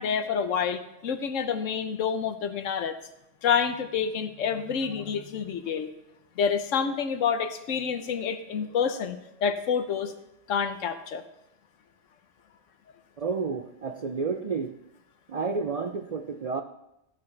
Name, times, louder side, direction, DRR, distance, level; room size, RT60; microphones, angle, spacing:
voice 1, 0.0-3.0 3.4-5.9 6.4-10.1 10.5-11.2, left 6 dB, 90° left, 10 dB, 1.2 m, -28 dB
voice 2, 13.2-14.8 15.3-16.6, right 4 dB, 65° right, 7 dB, 0.3 m, -30 dB
14.5 x 9.5 x 3.3 m, 0.86 s
omnidirectional pair, 1.3 m